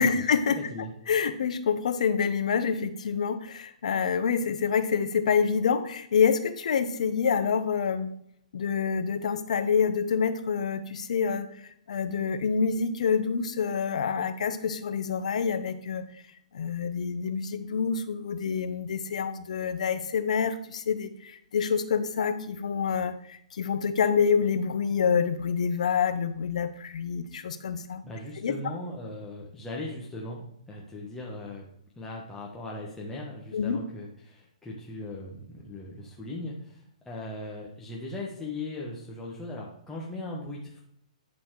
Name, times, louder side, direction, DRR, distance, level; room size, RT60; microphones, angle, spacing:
voice 1, 0.0-0.6 1.1-8.1 8.5-11.5 11.9-16.0 16.5-28.0 28.4-28.5 33.5-33.8, left 6 dB, 65° left, 10 dB, 0.9 m, -27 dB
voice 2, 0.6-0.9 28.0-31.6 32.0-40.8, left 2 dB, 10° left, -4 dB, 1.3 m, -39 dB
11.0 x 4.3 x 4.8 m, 0.71 s
hypercardioid pair, 135°, 4 cm